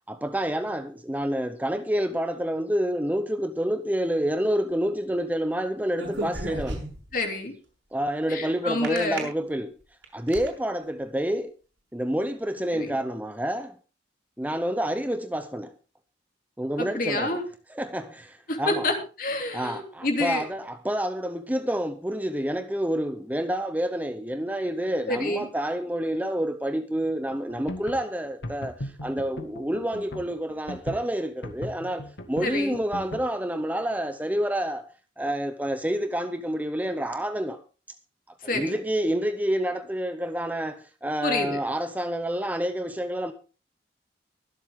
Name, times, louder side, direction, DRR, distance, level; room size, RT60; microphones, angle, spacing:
voice 1, 0.1-6.8 7.9-9.7 10.1-11.5 11.9-13.7 14.4-15.7 16.6-17.4 17.7-18.9 19.5-34.9 35.2-37.6 38.5-43.3, right 1 dB, 10° right, 0.7 m, -28 dB
sound 1, 5.9-7.1 8.8-9.2 9.8-10.5, right 1 dB, 75° right, 6.6 m, -33 dB
voice 2, 7.1-7.5 8.3-9.3 12.7-12.9 16.8-17.4 18.5-20.4 25.1-25.5 32.4-32.8 38.4-38.8 41.2-41.6, left 2 dB, 50° left, 2.9 m, -28 dB
sound 2, 27.3-33.3, left 1 dB, 85° left, 1.9 m, -38 dB
23.5 x 7.9 x 3.6 m
head